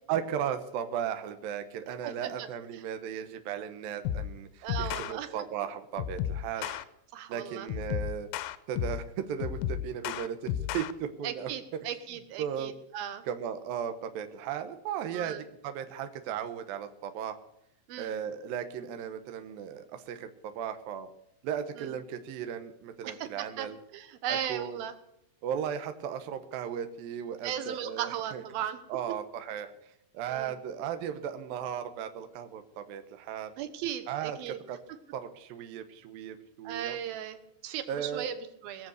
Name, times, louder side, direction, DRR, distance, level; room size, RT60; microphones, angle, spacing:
voice 1, 0.1-6.7 7.3-8.3 8.7-11.9 12.4-12.7 13.3-17.4 18.0-21.1 21.4-23.8 24.5-24.8 25.4-28.4 28.9-29.7 30.1-33.5 34.1-34.8 35.1-37.0 37.9-38.3, right 9 dB, 90° right, 8 dB, 2.0 m, -36 dB
voice 2, 1.9-2.8 4.6-5.4 6.6-6.8 7.1-7.7 11.2-13.2 15.1-15.4 17.9-18.2 21.8-21.9 23.0-23.7 23.9-24.9 27.4-28.8 29.1-29.2 30.3-30.6 33.6-34.6 34.9-35.0 36.6-38.9, right 10 dB, 70° right, 10 dB, 2.4 m, -37 dB
sound 1, 4.1-4.4 4.7-5.1 6.0-6.8 7.7-9.1 9.4-10.9, left 11 dB, 90° left, 3.3 m, -33 dB
20.5 x 7.5 x 8.0 m, 0.79 s
omnidirectional pair, 5.6 m